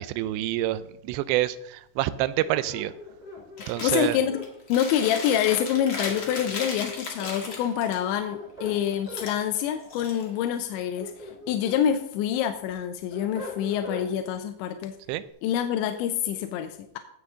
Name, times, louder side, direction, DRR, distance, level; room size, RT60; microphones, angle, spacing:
voice 1, 0.0-2.9 3.7-4.2 15.1-15.2, right 14 dB, 85° right, 15 dB, 2.7 m, -27 dB
sound 1, 2.4-4.5 5.8-6.9 8.1-9.3 10.7-11.8 12.3-14.1, left 1 dB, 5° left, 4.2 m, -41 dB
Chewing mastication, 3.6-4.0 4.4-8.0 9.0-10.6, left 3 dB, 70° left, 1.0 m, -36 dB
voice 2, 3.8-4.4 4.7-15.0 15.4-17.0, left 10 dB, 85° left, 7 dB, 3.0 m, -26 dB
17.0 x 7.2 x 3.7 m, 0.76 s
omnidirectional pair, 5.2 m